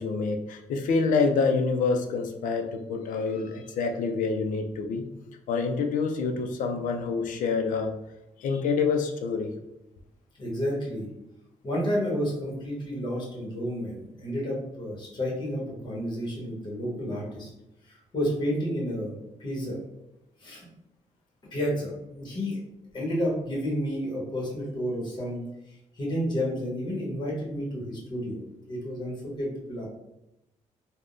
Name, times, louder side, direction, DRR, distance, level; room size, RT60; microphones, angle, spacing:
voice 1, 0.0-5.1 5.5-7.9 8.4-9.5, left 4 dB, 90° left, 5 dB, 0.4 m, -27 dB
voice 2, 10.4-11.1 11.6-17.5 17.9-19.8 20.4-20.7 21.5-22.6 22.9-28.4 28.7-29.9, equal, 35° left, -3 dB, 1.1 m, -31 dB
3.5 x 2.1 x 2.5 m, 0.88 s
cardioid pair, 120°, 13 cm